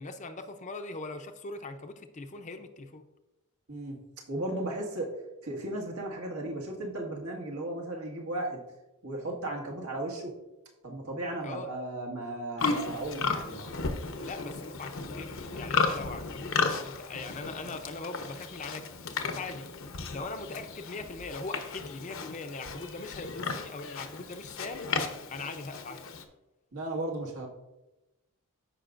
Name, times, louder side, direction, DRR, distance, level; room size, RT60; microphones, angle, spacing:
voice 1, 0.0-3.0 11.4-11.7 14.2-19.7 20.1-24.9 25.3-26.1, left 3 dB, 35° left, 7 dB, 0.6 m, -41 dB
voice 2, 4.3-5.1 5.4-8.6 9.0-10.3 10.8-13.7 14.2-14.3 26.7-27.5, right 1 dB, 75° right, -1 dB, 1.7 m, -35 dB
Livestock farm animals working animals, 12.6-26.2, left 4 dB, 60° left, 0.8 m, -34 dB
14.0 x 5.2 x 2.5 m, 1.0 s
head